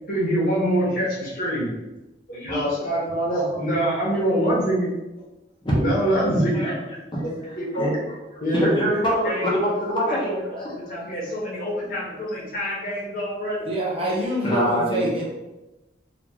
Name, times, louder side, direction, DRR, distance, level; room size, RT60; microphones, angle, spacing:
voice 1, 0.1-1.7 2.3-4.9 5.8-6.6 7.2-7.9 8.4-8.8 9.2-9.5 10.1-10.2 10.5-13.7, equal, 55° left, -6 dB, 1.5 m, -25 dB
voice 2, 2.4-2.8 3.3-3.6 5.6-5.7 6.2-8.2 8.5-10.9 14.4-15.1, equal, 30° left, -5 dB, 1.1 m, -26 dB
voice 3, 13.6-15.2, equal, 35° right, -3 dB, 0.8 m, -26 dB
4.1 x 2.9 x 3.0 m, 1.0 s
head